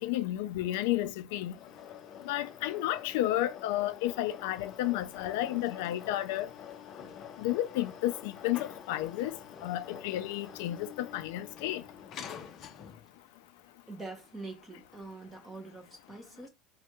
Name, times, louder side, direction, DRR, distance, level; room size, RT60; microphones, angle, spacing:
voice 1, 0.0-1.5 2.3-6.5 7.4-9.3 9.6-11.8, left 14 dB, 80° left, 0.3 m, -32 dB
sound 1, 1.4-13.2, left 8 dB, 35° left, 0.6 m, -47 dB
voice 2, 13.9-16.5, right 3 dB, 10° right, 0.9 m, -44 dB
3.3 x 2.1 x 2.9 m
cardioid pair, 175°, 0 cm